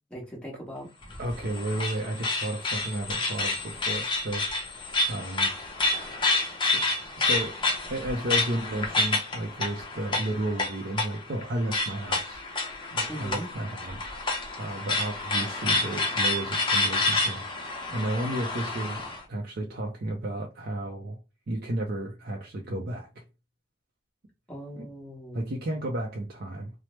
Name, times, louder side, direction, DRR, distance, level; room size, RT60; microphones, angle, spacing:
voice 1, 0.1-0.9 13.1-13.5 24.5-25.6, equal, 5° left, 1.0 m, -39 dB
sound 1, 1.0-19.2, left 3 dB, 25° left, 0.7 m, -29 dB
voice 2, 1.2-4.7 5.0-5.5 6.7-6.8 7.2-7.6 7.9-12.4 12.9-14.2 14.6-19.0 19.3-21.2 21.5-23.2 24.7-24.9 25.3-26.7, right 1 dB, 55° right, 0.5 m, -33 dB
3.1 x 2.0 x 3.0 m
head